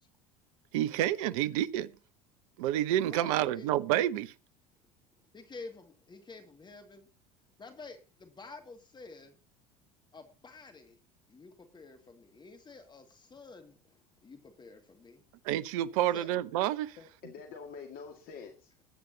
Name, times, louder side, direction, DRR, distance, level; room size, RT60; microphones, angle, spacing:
voice 1, 0.7-1.9 2.6-4.3 15.4-17.0, right 12 dB, 65° right, 0.8 m, -29 dB
voice 2, 3.1-3.7 5.3-7.1 7.6-9.4 10.1-11.0 11.3-15.2 16.0-16.3, left 3 dB, 25° left, 2.2 m, -50 dB
voice 3, 17.0-18.8, left 5 dB, 50° left, 2.0 m, -46 dB
21.0 x 9.3 x 2.8 m
hypercardioid pair, 70°, 19 cm